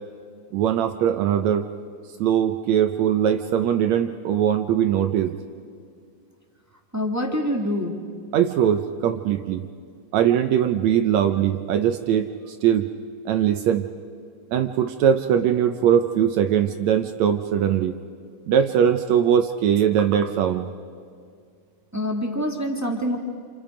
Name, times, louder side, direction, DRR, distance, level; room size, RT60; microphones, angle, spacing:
voice 1, 0.5-1.7 2.2-5.4 8.3-9.7 10.1-12.9 13.3-13.9 14.5-18.0 18.5-20.7, right 9 dB, 75° right, 7 dB, 1.7 m, -21 dB
voice 2, 6.9-7.9 21.9-23.2, equal, 10° right, 0 dB, 0.9 m, -25 dB
28.5 x 28.0 x 5.1 m, 2.1 s
omnidirectional pair, 3.8 m